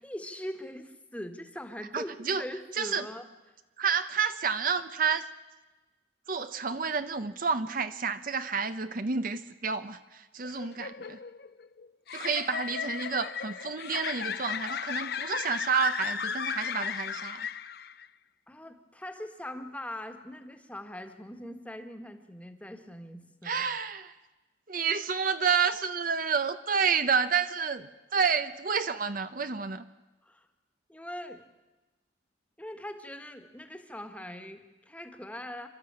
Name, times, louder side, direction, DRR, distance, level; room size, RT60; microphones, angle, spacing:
voice 1, 0.0-3.2 18.5-23.6 30.2-30.5 30.9-31.4 32.6-35.7, left 1 dB, 5° left, 7 dB, 1.6 m, -41 dB
voice 2, 1.9-2.4 2.7-3.1 3.8-5.2 6.3-11.2 12.1-17.5 23.4-24.1 24.7-29.8, right 6 dB, 50° right, 10 dB, 0.8 m, -29 dB
Laughing Yandere Remastered, 10.4-18.1, left 7 dB, 55° left, 0.6 m, -35 dB
28.0 x 13.0 x 8.8 m, 1.1 s
head